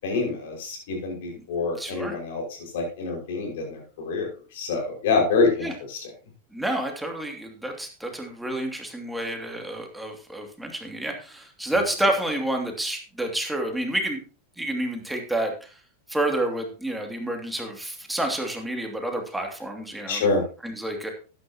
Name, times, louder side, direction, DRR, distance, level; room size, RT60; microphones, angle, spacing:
voice 1, 0.0-2.4 2.7-4.3 4.5-6.1 20.1-20.4, left 4 dB, 65° left, 1 dB, 5.7 m, -26 dB
voice 2, 1.8-2.2 5.6-5.7 6.5-14.2 14.6-15.5 16.1-20.2 20.6-21.1, right 1 dB, 5° right, 2 dB, 2.7 m, -29 dB
12.5 x 10.5 x 3.0 m, 0.36 s
hypercardioid pair, 100°, 0 cm